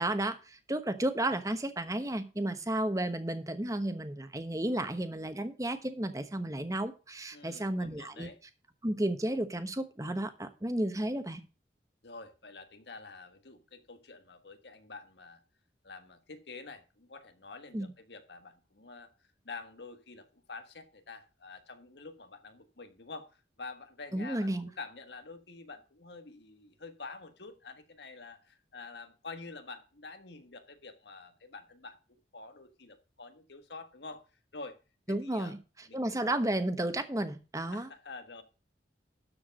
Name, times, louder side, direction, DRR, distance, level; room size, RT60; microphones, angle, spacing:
voice 1, 0.0-8.3 8.8-11.4 17.7-17.9 24.1-24.7 35.1-35.6 35.9-37.9, right 1 dB, 20° right, 9 dB, 1.0 m, -32 dB
voice 2, 7.3-8.4 12.0-15.4 15.8-34.2 34.5-34.8 35.1-35.6 35.9-36.3 37.7-38.4, left 3 dB, 75° left, 8 dB, 1.5 m, -48 dB
12.5 x 4.7 x 6.3 m, 0.32 s
head